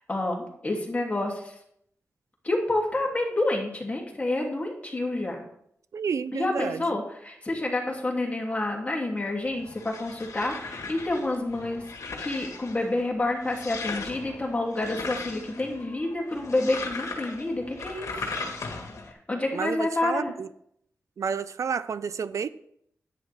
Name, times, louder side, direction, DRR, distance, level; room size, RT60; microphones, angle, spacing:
voice 1, 0.1-1.5 2.4-5.4 6.3-11.8 12.2-18.1 19.3-20.3, left 2 dB, 25° left, -1 dB, 2.7 m, -28 dB
voice 2, 5.9-6.8 19.5-20.5 21.2-22.5, right 6 dB, 70° right, 15 dB, 0.4 m, -30 dB
sound 1, 9.4-19.1, left 3 dB, 70° left, 1.6 m, -38 dB
10.5 x 9.5 x 3.5 m, 0.71 s
wide cardioid pair, 85°, 6 cm